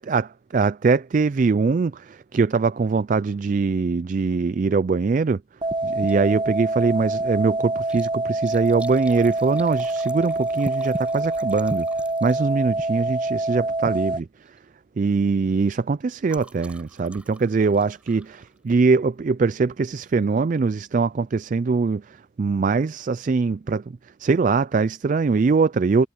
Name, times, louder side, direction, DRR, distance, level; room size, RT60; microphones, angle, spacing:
voice 1, 0.5-5.4 5.8-11.9 12.2-14.6 15.0-26.1, right 4 dB, 40° right, 0.3 m, -22 dB
sound 1, 5.6-14.2, right 2 dB, 25° right, 1.7 m, -26 dB
Liquid, 6.1-6.3 6.7-6.8 7.7-12.8 13.8-14.1 14.4-14.7 15.0-19.1 20.0-20.3 20.8-20.9 21.1-21.2, right 1 dB, 5° right, 5.1 m, -49 dB
head